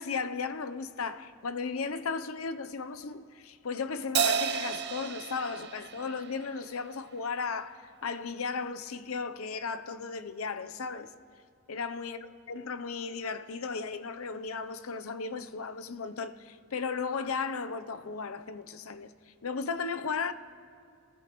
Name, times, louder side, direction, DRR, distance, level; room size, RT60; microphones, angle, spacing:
voice 1, 0.0-11.1 11.7-19.1 19.4-20.3, left 5 dB, 75° left, 0.7 m, -35 dB
Crash cymbal, 4.1-6.8, right 7 dB, 55° right, 0.8 m, -31 dB
30.0 x 15.5 x 3.1 m
head